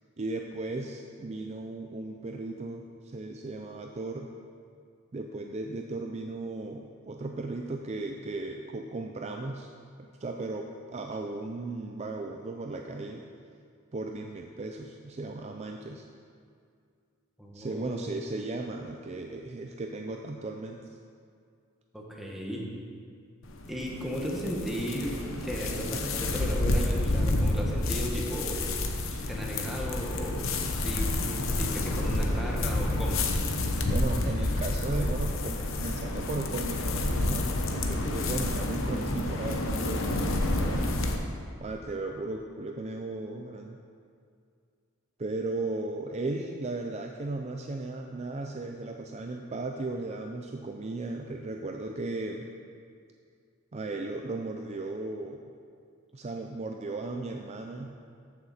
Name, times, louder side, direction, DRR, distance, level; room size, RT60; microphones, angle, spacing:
voice 1, 0.2-4.3 5.1-9.7 10.0-13.3 13.9-16.1 17.5-20.8 29.1-29.2 33.9-41.0 41.6-43.8 45.2-52.5 53.7-55.4 56.1-57.9, right 2 dB, 30° right, 3 dB, 0.4 m, -36 dB
voice 2, 17.4-18.1 21.9-22.7 23.7-25.1 25.4-28.6 29.1-33.2, equal, ahead, -3 dB, 1.3 m, -35 dB
sound 1, 23.4-41.2, left 2 dB, 65° left, 0.9 m, -29 dB
14.0 x 6.5 x 4.2 m, 2.3 s
head